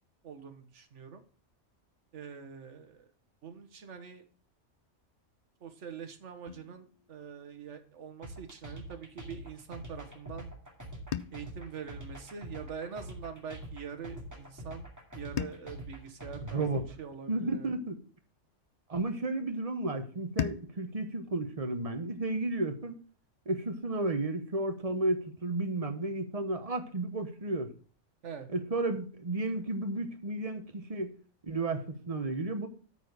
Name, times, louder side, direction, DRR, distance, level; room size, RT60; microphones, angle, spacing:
voice 1, 0.2-1.2 2.1-3.1 3.4-4.2 5.6-10.5 11.3-14.9 15.1-16.7 17.0-17.7 28.2-28.5, right 6 dB, 75° right, 8 dB, 1.4 m, -44 dB
sound 1, 6.5-8.7 11.1-13.4 15.4-17.8 20.4-22.9, left 10 dB, 70° left, 0.3 m, -43 dB
sound 2, 8.2-16.9, right 1 dB, 15° right, 2.2 m, -45 dB
voice 2, 16.4-16.9 17.3-18.0 18.9-23.0 23.5-27.7 28.5-31.1 31.4-32.7, right 2 dB, 30° right, 7 dB, 1.1 m, -33 dB
8.9 x 4.6 x 6.5 m, 0.41 s
omnidirectional pair, 1.2 m